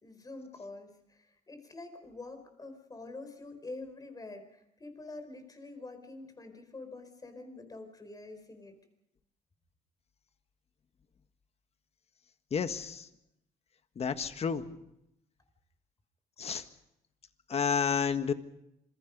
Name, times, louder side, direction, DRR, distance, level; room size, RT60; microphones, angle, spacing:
voice 1, 0.0-8.8, left 2 dB, 20° left, 7 dB, 4.9 m, -46 dB
voice 2, 12.5-13.0 14.0-14.6 16.4-16.6 17.5-18.3, left 6 dB, 35° left, 9 dB, 1.6 m, -30 dB
27.0 x 22.5 x 5.4 m, 0.83 s
cardioid pair, 110°, 17 cm